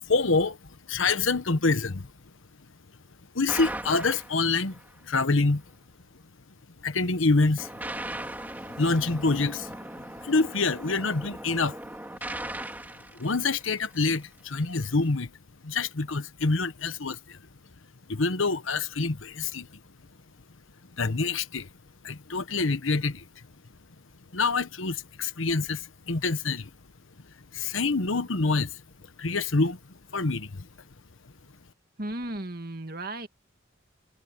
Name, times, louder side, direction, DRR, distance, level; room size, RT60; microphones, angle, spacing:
voice 1, 0.0-0.6 0.9-2.1 3.3-5.6 6.8-7.7 8.8-11.8 13.1-15.3 15.6-17.4 18.1-19.7 21.0-21.7 22.0-23.3 24.3-26.7 27.5-28.8 29.2-29.8 30.1-30.7, left 3 dB, 80° left, 1.2 m, -26 dB
sound 1, 3.5-4.9 7.6-14.1, right 1 dB, 10° right, 2.9 m, -38 dB
voice 2, 32.0-33.3, right 1 dB, 45° right, 2.0 m, -35 dB
head